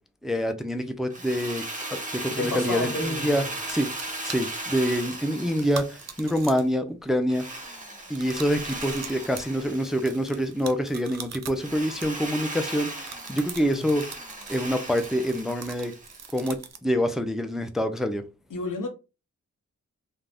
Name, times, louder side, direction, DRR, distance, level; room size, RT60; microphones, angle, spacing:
voice 1, 0.2-1.6 1.9-3.9 4.2-7.4 8.1-14.1 14.5-15.9 16.3-18.2, equal, ahead, 0.3 m, -26 dB
Drill, 1.1-6.6 7.3-10.6 11.6-16.4, right 2 dB, 25° right, 0.8 m, -37 dB
voice 2, 2.3-3.5 13.6-13.8 18.5-18.9, left 2 dB, 75° left, 0.7 m, -31 dB
sound 1, 3.7-6.8 7.1-7.5 8.1-12.5 12.9-16.9, right 6 dB, 55° right, 0.5 m, -42 dB
2.4 x 2.1 x 3.3 m
cardioid pair, 60°, 32 cm